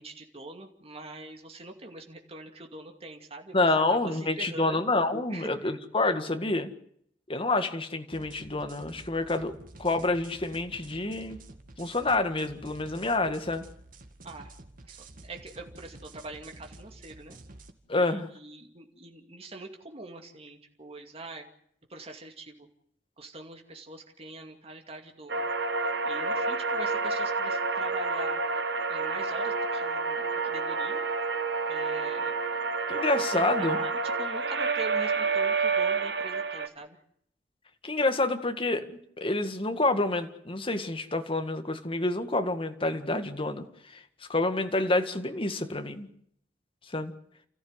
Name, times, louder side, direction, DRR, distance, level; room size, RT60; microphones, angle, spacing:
voice 1, 0.0-4.9 5.3-5.7 14.2-14.5 14.8-17.4 17.9-21.4 21.9-22.7 23.2-25.5 26.0-28.4 28.9-31.0 31.7-32.4 33.3-37.0, right 2 dB, 35° right, 3 dB, 2.5 m, -43 dB
voice 2, 3.5-6.7 7.3-9.5 9.8-11.4 11.8-13.6 17.9-18.3 32.9-33.8 37.8-38.9 39.2-44.0 44.3-46.1 46.9-47.1, left 2 dB, 30° left, 7 dB, 1.9 m, -28 dB
sound 1, 8.1-17.7, right 2 dB, 55° right, 2.2 m, -50 dB
sound 2, 25.3-36.7, right 4 dB, 70° right, 1.4 m, -29 dB
29.5 x 14.5 x 8.2 m, 0.69 s
head